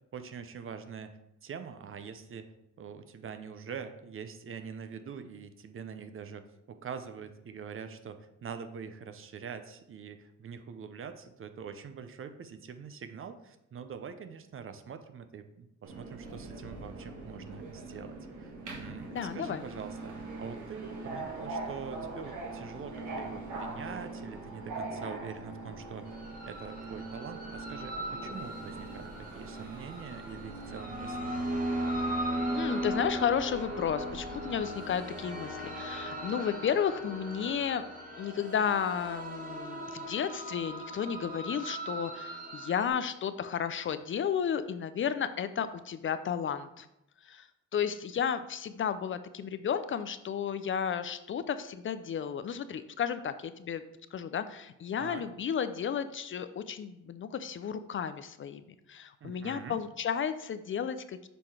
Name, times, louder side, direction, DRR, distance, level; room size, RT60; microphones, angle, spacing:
voice 1, 0.1-2.5 2.8-18.5 18.8-26.1 26.5-31.3 55.0-55.2 59.2-59.8, right 6 dB, 45° right, 10 dB, 0.7 m, -44 dB
Subway metro underground, 15.8-34.6, right 2 dB, 75° right, 1.6 m, -42 dB
voice 2, 19.1-19.6 32.5-37.8 38.2-46.9 47.2-53.8 54.1-58.6 58.9-61.3, left 8 dB, 40° left, 12 dB, 0.4 m, -33 dB
sound 1, 26.1-42.9, right 1 dB, 25° right, 1.5 m, -38 dB
6.7 x 3.9 x 4.7 m, 0.87 s
cardioid pair, 90°, 30 cm